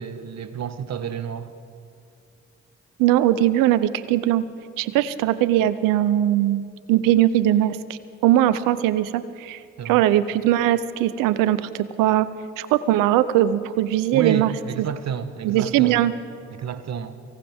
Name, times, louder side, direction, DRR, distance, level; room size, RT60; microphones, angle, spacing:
voice 1, 0.0-1.5 9.8-10.0 14.1-16.0 16.5-17.2, right 8 dB, 55° right, 11 dB, 1.2 m, -30 dB
voice 2, 3.0-4.4 4.8-6.6 6.9-12.3 12.6-14.5 15.4-16.1, right 13 dB, 85° right, 15 dB, 0.7 m, -20 dB
24.0 x 17.0 x 3.6 m, 2.2 s
supercardioid pair, 50°, 32 cm